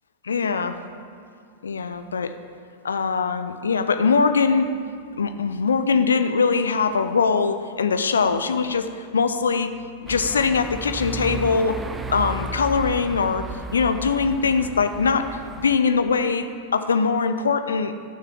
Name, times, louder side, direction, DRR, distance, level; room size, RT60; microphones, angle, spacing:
voice 1, 0.2-0.8 1.6-2.3 2.8-4.7 5.2-9.8 10.0-11.8 12.1-13.4 13.7-17.9, left 5 dB, 70° left, 9 dB, 0.6 m, -22 dB
sound 1, 10.1-15.8, right 3 dB, 10° right, 0.6 m, -34 dB
13.0 x 6.6 x 7.4 m, 2.2 s
figure-of-eight pair, 90°, 0 cm